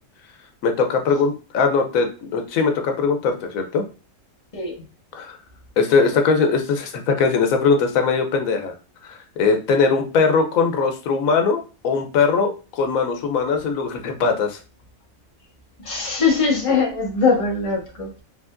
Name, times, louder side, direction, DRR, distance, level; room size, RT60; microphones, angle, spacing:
voice 1, 0.6-3.8 5.1-5.4 5.8-8.7 9.0-14.6, left 5 dB, 90° left, 5 dB, 1.1 m, -20 dB
voice 2, 15.8-18.2, left 4 dB, 25° left, -1 dB, 1.2 m, -21 dB
4.9 x 3.4 x 2.5 m, 0.34 s
omnidirectional pair, 1.4 m